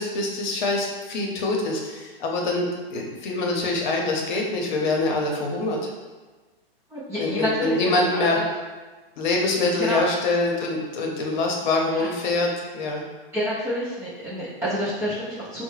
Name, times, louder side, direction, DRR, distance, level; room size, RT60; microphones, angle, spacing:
voice 1, 0.0-5.9 7.2-8.4 9.2-13.0, left 2 dB, 50° left, 0 dB, 0.8 m, -25 dB
voice 2, 6.9-7.8 8.3-8.4 9.8-10.0 11.9-12.1 13.3-15.6, equal, 10° right, -10 dB, 0.3 m, -28 dB
3.7 x 2.2 x 3.2 m, 1.3 s
hypercardioid pair, 135°, 30 cm